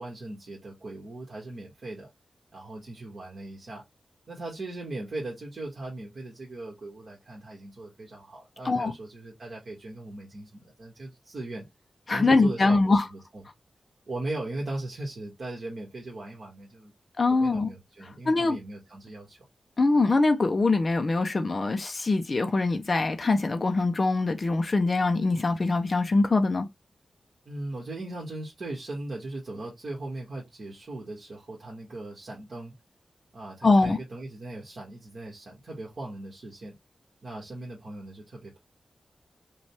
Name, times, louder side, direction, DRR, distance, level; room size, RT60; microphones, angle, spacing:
voice 1, 0.0-2.1 2.5-3.8 4.3-11.6 12.1-13.4 14.1-16.9 17.3-19.4 27.4-32.7 33.3-36.7 37.2-38.6, right 2 dB, 50° right, 1.6 m, -39 dB
voice 2, 12.1-13.0 17.2-17.7 18.3-18.6 19.8-26.7 33.6-34.0, left 3 dB, 35° left, 0.5 m, -23 dB
5.1 x 2.3 x 3.3 m
wide cardioid pair, 165°, 0 cm